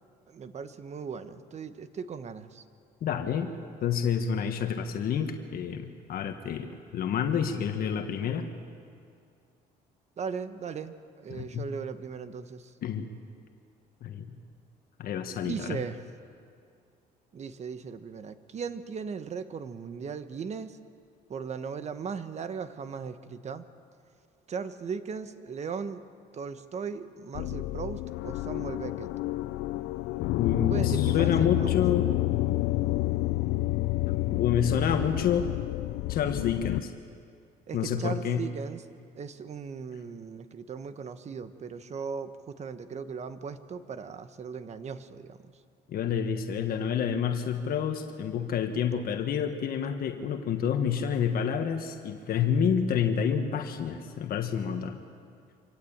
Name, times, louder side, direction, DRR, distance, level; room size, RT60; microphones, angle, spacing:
voice 1, 0.3-2.6 10.2-12.7 15.4-16.0 17.3-20.8 21.3-23.6 24.5-26.0 26.3-29.1 30.7-31.8 37.7-38.9 39.1-45.5, right 6 dB, 40° right, 11 dB, 1.3 m, -38 dB
voice 2, 3.0-3.5 3.8-8.5 11.3-11.7 12.8-13.1 14.0-14.3 15.0-15.8 30.4-32.1 34.3-35.5 36.1-36.9 37.7-38.4 45.9-55.0, left 7 dB, 60° left, 6 dB, 1.5 m, -28 dB
sound 1, 27.3-36.8, left 18 dB, 85° left, 0.5 m, -29 dB
25.5 x 16.0 x 8.8 m, 2.3 s
cardioid pair, 110°, 17 cm